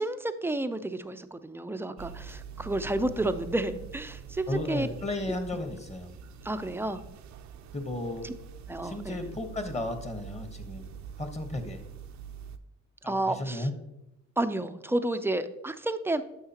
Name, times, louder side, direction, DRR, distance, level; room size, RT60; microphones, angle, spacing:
voice 1, 0.0-4.9 6.4-7.0 8.2-8.3 8.7-9.2 13.1-13.7 14.4-16.2, right 2 dB, 10° right, 11 dB, 0.4 m, -31 dB
sound 1, 2.0-12.6, right 7 dB, 65° right, 0.5 m, -45 dB
voice 2, 2.6-3.2 4.5-6.1 7.7-8.3 8.8-10.9 11.2-11.8 13.0-13.7, left 2 dB, 20° left, 7 dB, 1.1 m, -34 dB
9.6 x 6.4 x 2.9 m, 0.90 s
cardioid pair, 90°, 30 cm